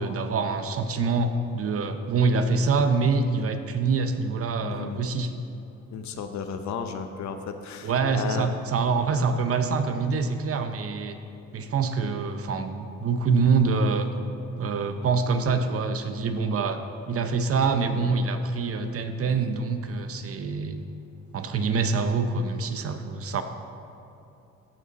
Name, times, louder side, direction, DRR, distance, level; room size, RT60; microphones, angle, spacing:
voice 1, 0.0-5.3 7.8-11.2 11.5-14.1 14.6-16.8 17.1-20.8 21.3-23.4, right 4 dB, 50° right, 8 dB, 0.7 m, -25 dB
voice 2, 4.6-5.0 5.9-8.6, left 6 dB, 65° left, 7 dB, 0.8 m, -34 dB
15.0 x 5.1 x 4.1 m, 2.8 s
cardioid pair, 90°, 30 cm